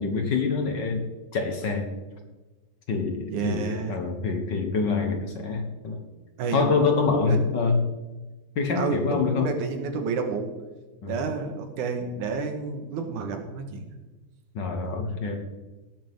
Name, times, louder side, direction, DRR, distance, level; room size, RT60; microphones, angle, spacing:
voice 1, 0.0-1.9 2.9-6.0 6.5-7.8 8.5-9.5 11.0-11.2 14.5-15.4, left 4 dB, 60° left, 4 dB, 1.2 m, -26 dB
voice 2, 3.3-4.0 6.4-6.7 7.3-7.4 8.8-9.0 9.3-10.5 11.1-13.9, right 5 dB, 80° right, 5 dB, 2.8 m, -30 dB
18.5 x 8.5 x 3.6 m, 1.2 s
omnidirectional pair, 3.5 m